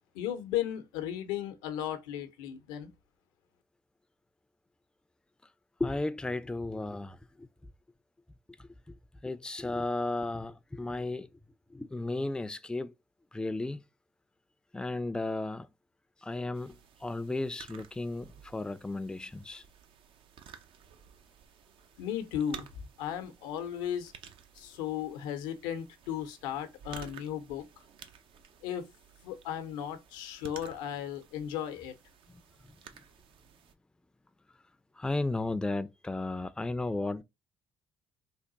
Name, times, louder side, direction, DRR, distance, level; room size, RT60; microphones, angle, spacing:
voice 1, 0.1-2.9 22.0-22.7 23.0-24.1 24.6-27.7 28.6-28.9 29.2-31.9, left 10 dB, 90° left, 0.6 m, -35 dB
voice 2, 5.8-7.5 8.6-9.0 9.2-11.3 11.7-12.9 13.3-13.8 14.7-15.7 16.2-19.6 32.3-32.4 35.0-37.2, left 2 dB, 10° left, 0.4 m, -34 dB
sound 1, 16.5-33.7, right 8 dB, 65° right, 0.6 m, -53 dB
3.4 x 2.3 x 3.9 m
supercardioid pair, 60°, 10 cm